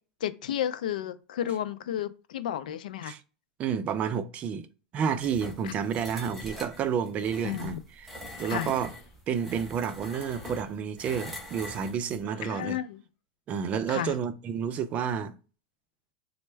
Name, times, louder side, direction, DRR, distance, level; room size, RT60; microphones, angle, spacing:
voice 1, 0.2-3.1 5.6-5.7 7.4-7.8 8.5-8.7 12.4-13.0 13.9-14.1, left 10 dB, 80° left, 0.4 m, -32 dB
voice 2, 3.6-4.7 4.9-8.1 8.4-8.9 9.3-12.8 13.5-15.4, right 7 dB, 30° right, 0.4 m, -30 dB
sound 1, 5.2-12.2, left 1 dB, ahead, 1.2 m, -44 dB
Human voice, 8.2-9.2 10.0-10.7 12.2-12.9, left 4 dB, 35° left, 1.2 m, -51 dB
4.2 x 2.0 x 3.3 m
supercardioid pair, 130°, 4 cm